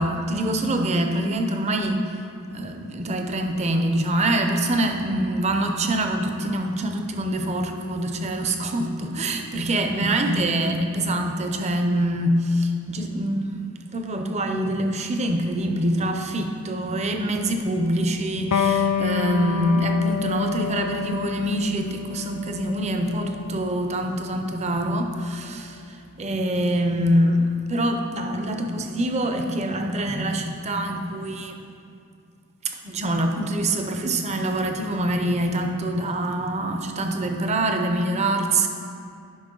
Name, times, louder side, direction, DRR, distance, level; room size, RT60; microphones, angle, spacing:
voice 1, 0.0-2.2 2.5-13.4 13.9-31.5 32.6-38.7, right 1 dB, 30° right, 5 dB, 0.5 m, -25 dB
Electric guitar, 18.5-25.7, left 6 dB, 80° left, 0.4 m, -28 dB
10.0 x 5.3 x 3.8 m, 2.5 s
head